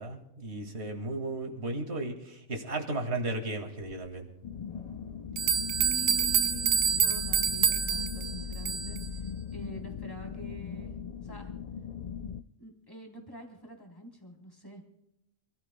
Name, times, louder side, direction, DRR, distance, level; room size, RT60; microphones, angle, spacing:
voice 1, 0.0-4.3, right 2 dB, 50° right, 3 dB, 2.3 m, -35 dB
sound 1, 4.4-12.4, left 7 dB, 80° left, 0.3 m, -39 dB
sound 2, 4.9-5.0 5.4-9.1, right 7 dB, 75° right, 1.1 m, -27 dB
voice 2, 5.7-9.0 9.5-11.0 11.2-11.5 12.6-14.8, equal, 15° left, 1 dB, 3.6 m, -46 dB
28.0 x 15.5 x 2.2 m, 0.86 s
omnidirectional pair, 1.4 m